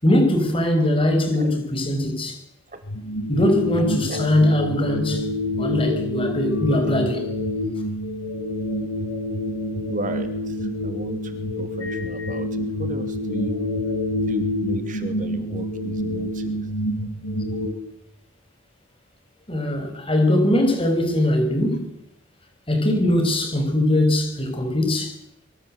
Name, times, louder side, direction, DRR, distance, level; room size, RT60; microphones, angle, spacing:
voice 1, 0.0-2.4 3.3-5.3 5.6-7.3 19.5-22.0 22.7-25.1, left 1 dB, 25° left, 6.0 m, -21 dB
sound 1, 2.8-17.7, left 1 dB, 80° left, 7.3 m, -27 dB
voice 2, 9.9-13.7 14.3-16.7 17.0-17.1, right 1 dB, 40° right, 2.6 m, -34 dB
25.5 x 24.5 x 8.0 m
head